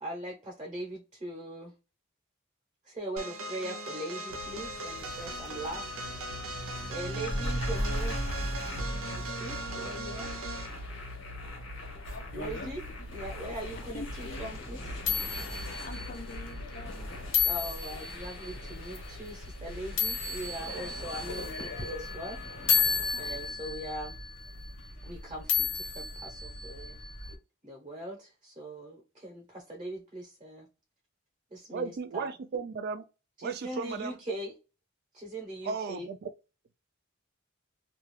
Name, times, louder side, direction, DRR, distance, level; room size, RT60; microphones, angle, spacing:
voice 1, 0.0-1.7 2.9-5.8 6.9-8.4 8.7-8.8 9.1-10.3 12.3-12.8 13.1-15.0 17.4-22.4 23.2-24.2 25.0-27.0 27.6-30.7 31.5-32.3 33.4-34.5 35.1-36.1, right 1 dB, 25° right, 0.8 m, -40 dB
sound 1, 3.2-10.8, right 2 dB, 85° right, 0.7 m, -39 dB
sound 2, 4.3-23.6, left 1 dB, 85° left, 1.2 m, -39 dB
sound 3, 12.0-27.4, left 6 dB, 65° left, 1.0 m, -34 dB
voice 2, 12.1-12.7 13.0-13.1 13.7-14.5 15.8-17.1 20.8-21.6 23.1-23.3 23.6-23.8, left 3 dB, 40° left, 0.5 m, -46 dB
voice 3, 31.7-33.0 33.4-34.2 35.7-36.3, right 5 dB, 50° right, 0.3 m, -35 dB
2.4 x 2.3 x 3.2 m
head